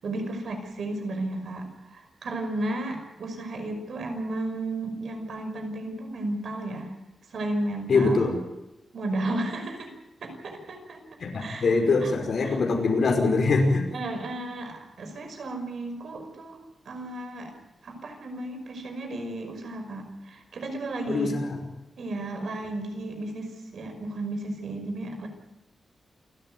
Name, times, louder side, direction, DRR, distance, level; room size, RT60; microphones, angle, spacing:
voice 1, 0.0-6.9 7.3-8.3 8.9-9.9 10.2-11.0 11.4-11.8 12.0-12.1 12.4-12.6 13.9-17.5 17.8-21.3 22.0-25.3, right 2 dB, 70° right, 6 dB, 5.6 m, -33 dB
voice 2, 7.9-8.4 11.2-13.9 21.1-21.6, left 3 dB, 60° left, 3 dB, 5.3 m, -23 dB
28.5 x 13.5 x 9.4 m, 0.97 s
wide cardioid pair, 145°, 0 cm